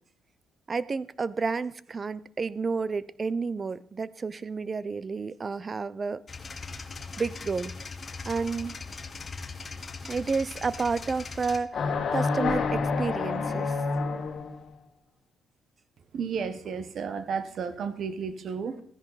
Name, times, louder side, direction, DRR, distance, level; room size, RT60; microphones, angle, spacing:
voice 1, 0.7-6.2 7.2-7.7 8.2-8.7 10.1-13.8, right 4 dB, 35° right, 19 dB, 0.6 m, -30 dB
sound 1, 6.3-11.6, left 4 dB, 35° left, 1.2 m, -40 dB
sound 2, 11.7-14.6, left 4 dB, 60° left, 1.7 m, -28 dB
voice 2, 16.1-18.8, right 6 dB, 60° right, 12 dB, 1.1 m, -32 dB
14.0 x 10.5 x 4.1 m, 0.62 s
cardioid pair, 90°, 0 cm